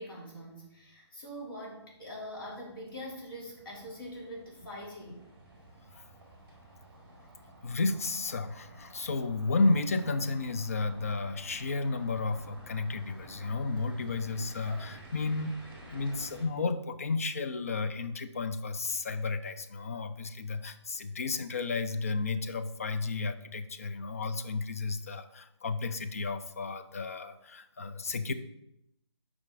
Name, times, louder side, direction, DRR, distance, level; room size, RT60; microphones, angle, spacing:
voice 1, 0.0-5.3, equal, 50° left, -4 dB, 2.7 m, -43 dB
sound 1, 1.9-16.5, right 1 dB, 10° right, 1.6 m, -52 dB
voice 2, 7.6-15.7 15.9-28.3, left 3 dB, 30° left, 10 dB, 0.4 m, -32 dB
7.3 x 5.0 x 3.6 m, 0.83 s
figure-of-eight pair, 160°, 15 cm